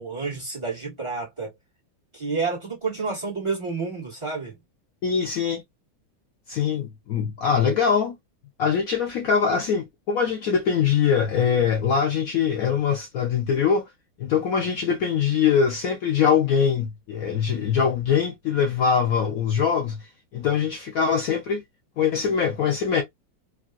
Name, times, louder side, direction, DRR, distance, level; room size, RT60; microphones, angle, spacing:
voice 1, 0.0-1.5 2.1-4.6, right 4 dB, 15° right, 1.2 m, -29 dB
voice 2, 5.0-5.6 6.5-8.2 8.6-13.8 14.2-20.1 20.3-21.6 22.0-23.0, left 7 dB, 90° left, 0.7 m, -23 dB
3.5 x 2.3 x 2.4 m
omnidirectional pair, 2.2 m